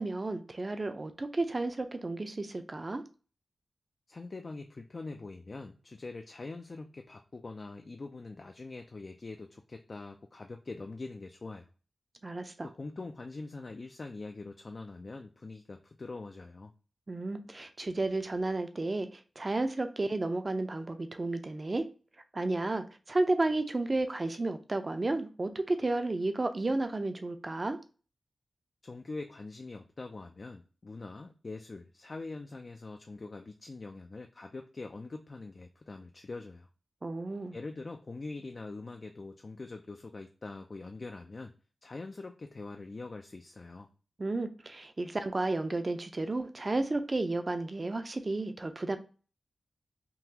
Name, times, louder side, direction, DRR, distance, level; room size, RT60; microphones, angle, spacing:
voice 1, 0.0-3.0 12.2-12.7 17.1-21.9 22.3-27.8 37.0-37.6 44.2-49.0, right 2 dB, 40° right, 0.5 m, -32 dB
voice 2, 4.1-11.7 12.6-16.7 28.8-36.7 37.5-41.5 41.8-43.9, left 3 dB, 50° left, 0.3 m, -43 dB
3.7 x 2.3 x 2.8 m
cardioid pair, 45°, 0 cm